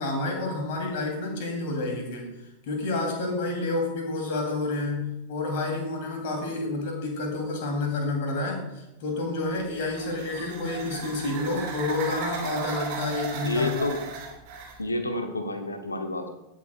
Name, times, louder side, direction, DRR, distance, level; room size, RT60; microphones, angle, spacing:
voice 1, 0.0-2.3 2.7-13.7, left 2 dB, 50° left, 1 dB, 2.9 m, -29 dB
sound 1, 9.5-14.8, right 4 dB, 45° right, 3.0 m, -36 dB
voice 2, 13.4-14.0 14.8-16.3, left 2 dB, 80° left, 6 dB, 1.2 m, -29 dB
18.5 x 7.4 x 2.3 m, 0.97 s
figure-of-eight pair, 90°, 0 cm